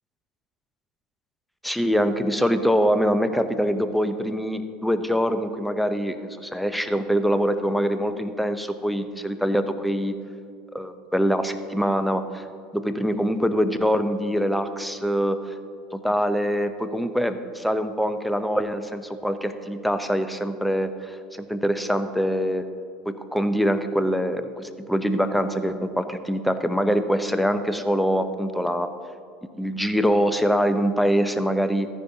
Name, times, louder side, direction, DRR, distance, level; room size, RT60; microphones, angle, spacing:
voice 1, 1.6-6.2 6.4-10.1 10.7-12.5 12.7-15.5 15.9-22.7 23.1-28.9 29.6-31.9, equal, ahead, 9 dB, 0.6 m, -24 dB
14.0 x 10.0 x 2.7 m, 2.3 s
supercardioid pair, 100°, 2 cm